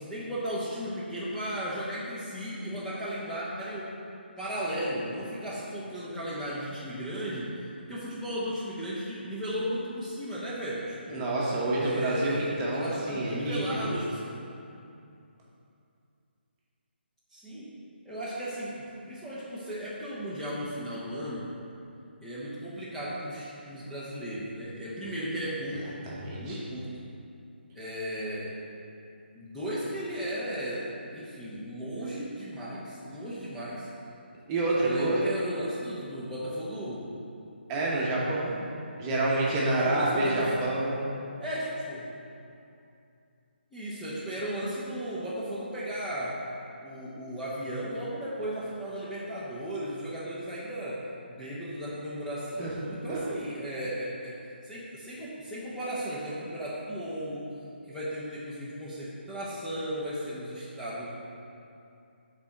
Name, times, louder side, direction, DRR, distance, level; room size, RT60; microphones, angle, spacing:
voice 1, 0.0-3.9 4.4-11.3 11.8-14.4 17.3-17.8 18.0-21.5 22.2-25.8 26.4-27.0 27.7-28.7 29.3-33.9 34.8-37.1 39.5-40.5 41.4-42.1 43.7-46.4 46.8-51.0 51.3-57.5 57.9-61.1, equal, 5° left, -12 dB, 0.7 m, -35 dB
voice 2, 11.1-13.6 26.1-26.6 34.5-35.2 37.7-38.6 39.0-41.0 52.6-52.7 53.1-53.2, right 2 dB, 20° right, -5 dB, 1.0 m, -28 dB
5.2 x 4.3 x 5.9 m, 2.6 s
figure-of-eight pair, 150°, 6 cm